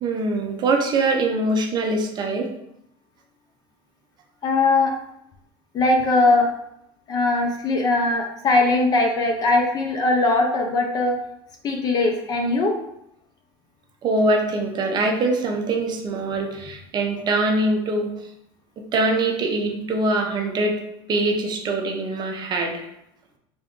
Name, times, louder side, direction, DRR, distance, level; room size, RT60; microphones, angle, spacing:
voice 1, 0.0-2.5 14.0-18.1 18.9-20.8 21.1-22.9, right 2 dB, 30° right, 3 dB, 0.6 m, -23 dB
voice 2, 4.4-4.9 5.7-6.5 7.1-11.2 11.6-12.7, left 2 dB, 30° left, 2 dB, 0.5 m, -20 dB
3.4 x 2.5 x 3.6 m, 0.78 s
supercardioid pair, 140°, 14 cm